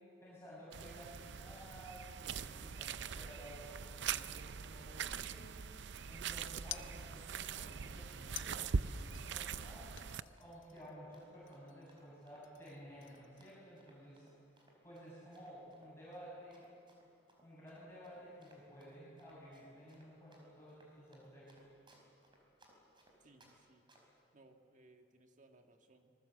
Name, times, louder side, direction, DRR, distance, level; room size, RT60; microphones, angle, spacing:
voice 1, 0.2-5.5 6.0-10.0 10.4-14.2 14.6-16.7 17.4-21.5, equal, 15° left, -9 dB, 7.1 m, -54 dB
sound 1, 0.7-10.2, right 6 dB, 60° right, 0.6 m, -42 dB
Run, 6.3-23.5 23.9-24.2, right 1 dB, 25° right, 4.5 m, -67 dB
sound 2, 6.7-7.5 8.3-9.6 10.0-11.1 11.5-12.1 12.4-13.6, left 12 dB, 80° left, 0.8 m, -52 dB
voice 2, 23.2-23.9 24.3-26.1, right 2 dB, 40° right, 4 dB, 1.8 m, -64 dB
26.0 x 20.0 x 7.9 m, 2.5 s
head